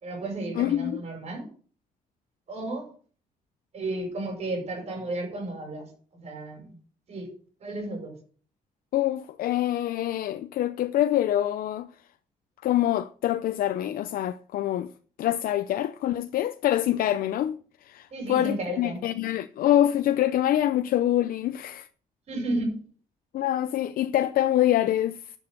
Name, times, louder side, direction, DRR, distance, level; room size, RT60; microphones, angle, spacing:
voice 1, 0.0-1.5 2.5-2.9 3.7-5.9 6.1-6.7 7.1-7.3 7.6-8.1 18.1-19.0 22.3-22.8, right 2 dB, 45° right, 5.8 m, -33 dB
voice 2, 0.6-1.0 8.9-11.9 12.6-14.9 15.2-21.9 23.3-25.2, left 12 dB, 80° left, 0.6 m, -25 dB
11.5 x 7.2 x 6.8 m
cardioid pair, 165°, 15 cm